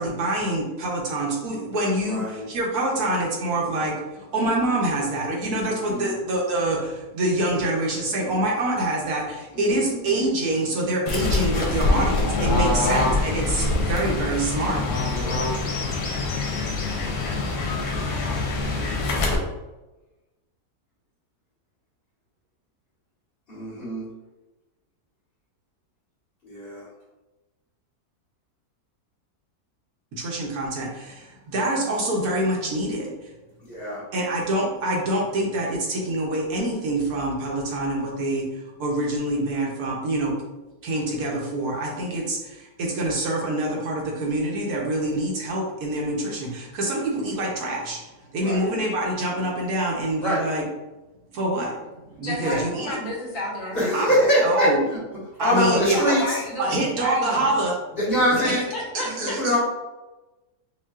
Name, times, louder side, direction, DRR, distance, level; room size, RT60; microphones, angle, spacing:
voice 1, 0.0-15.1 30.2-33.1 34.1-38.4 38.8-40.3 40.8-48.0 48.3-50.6 51.3-51.8 52.2-53.0 53.9-54.1 54.4-54.9 55.4-56.1 56.6-57.7 58.3-58.6 58.9-59.5, right 1 dB, 75° right, -2 dB, 1.4 m, -26 dB
voice 2, 2.0-2.5 5.5-6.1 9.5-10.1 12.6-13.1 13.5-13.8 15.1-15.4 23.5-24.1 26.4-26.9 33.6-34.0 48.4-48.7 50.2-50.5 52.4-52.6 53.7-55.0 55.4-56.4 57.9-58.6 59.1-59.6, equal, 40° left, -9 dB, 1.6 m, -25 dB
Fowl / Bird, 11.1-19.4, left 3 dB, 85° left, 1.3 m, -24 dB
voice 3, 52.2-54.2 55.5-57.5 58.1-58.2 58.7-59.4, left 1 dB, 60° left, -5 dB, 1.3 m, -31 dB
5.4 x 2.3 x 2.4 m, 1.1 s
omnidirectional pair, 1.6 m